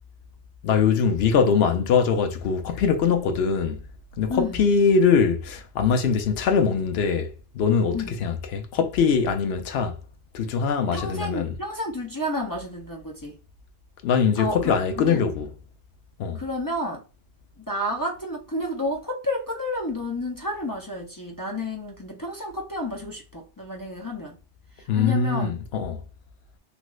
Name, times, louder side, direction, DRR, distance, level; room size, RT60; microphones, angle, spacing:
voice 1, 0.6-3.8 4.2-10.0 10.3-11.5 14.0-15.5 16.2-16.4 24.9-26.0, left 6 dB, 70° left, 0.8 m, -22 dB
voice 2, 4.3-4.7 7.9-8.2 10.9-13.4 14.4-14.6 15.0-15.2 16.3-17.0 17.6-24.4 24.8-25.5, left 1 dB, 30° left, 0.4 m, -30 dB
3.1 x 3.0 x 2.3 m
omnidirectional pair, 1.2 m